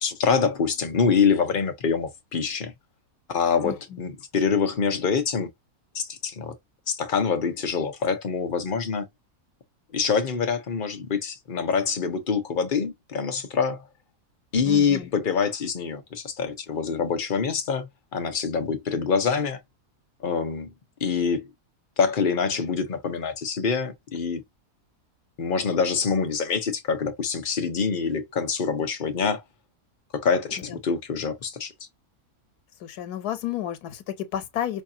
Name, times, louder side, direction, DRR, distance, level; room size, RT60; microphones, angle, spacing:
voice 1, 0.0-2.7 3.3-5.5 5.9-6.5 6.9-9.1 9.9-13.8 14.5-19.6 20.2-20.7 21.0-21.5 22.0-24.4 25.4-29.4 30.1-31.7, left 5 dB, 40° left, 0.9 m, -25 dB
voice 2, 14.7-15.1 32.8-34.8, left 11 dB, 85° left, 1.3 m, -31 dB
5.5 x 2.4 x 2.7 m
omnidirectional pair, 1.6 m